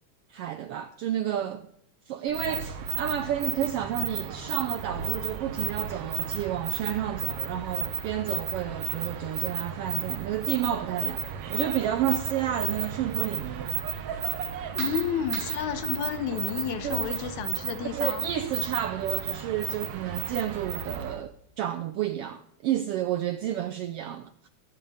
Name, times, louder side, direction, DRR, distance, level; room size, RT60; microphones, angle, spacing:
voice 1, 0.3-1.7 2.1-11.2 11.5-13.8 16.8-17.3 17.9-24.5, right 11 dB, 85° right, 1.3 m, -31 dB
sound 1, 2.3-21.2, right 9 dB, 65° right, 1.9 m, -33 dB
voice 2, 14.7-18.3, left 8 dB, 80° left, 2.3 m, -31 dB
22.5 x 9.7 x 3.5 m
omnidirectional pair, 3.3 m